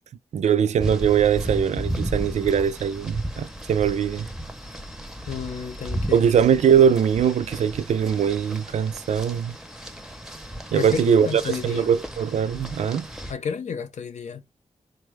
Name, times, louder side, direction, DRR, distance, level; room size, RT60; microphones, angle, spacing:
voice 1, 0.3-4.3 6.1-9.6 10.7-13.1, right 8 dB, 75° right, 0.4 m, -21 dB
sound 1, 0.8-13.3, right 1 dB, 5° right, 0.6 m, -34 dB
voice 2, 5.3-6.2 10.7-11.9 13.3-14.4, left 6 dB, 80° left, 0.8 m, -31 dB
4.0 x 2.2 x 3.2 m
wide cardioid pair, 130°, 12 cm